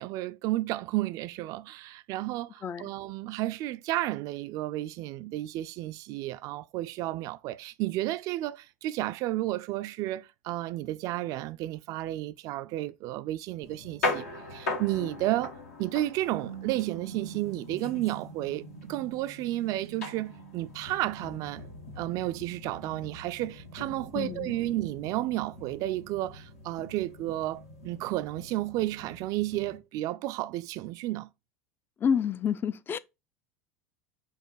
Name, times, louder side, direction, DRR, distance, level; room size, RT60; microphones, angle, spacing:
voice 1, 0.0-15.5 15.8-21.7 22.0-31.3, right 16 dB, 50° right, 0.3 m, -32 dB
voice 2, 2.6-2.9 24.1-24.5 32.0-33.0, left 7 dB, 25° left, 0.4 m, -29 dB
sound 1, 13.6-29.8, left 2 dB, 80° left, 1.2 m, -40 dB
5.4 x 2.5 x 3.8 m
figure-of-eight pair, 75°, 8 cm